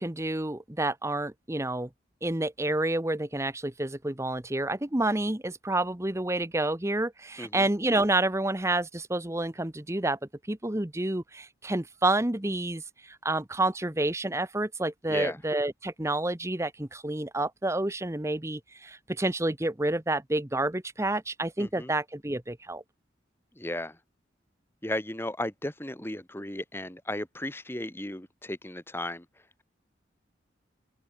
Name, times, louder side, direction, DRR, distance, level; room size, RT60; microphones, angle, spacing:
voice 1, 0.0-1.9 2.2-10.2 10.5-12.8 13.1-22.8, right 2 dB, 15° right, 1.0 m, -29 dB
voice 2, 21.6-21.9 23.6-24.0 24.8-29.3, left 1 dB, 10° left, 2.0 m, -35 dB
open air
head